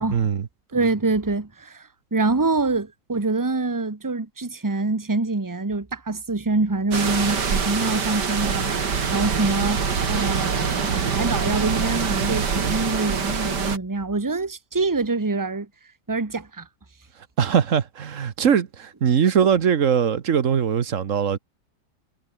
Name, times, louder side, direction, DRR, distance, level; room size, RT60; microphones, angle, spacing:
voice 1, 0.1-0.5 17.4-21.4, right 7 dB, 50° right, 1.4 m, -21 dB
voice 2, 0.7-15.7 16.1-16.7, right 3 dB, 10° right, 1.2 m, -25 dB
sound 1, 6.9-13.8, right 6 dB, 70° right, 2.8 m, -24 dB
omnidirectional pair, 1.9 m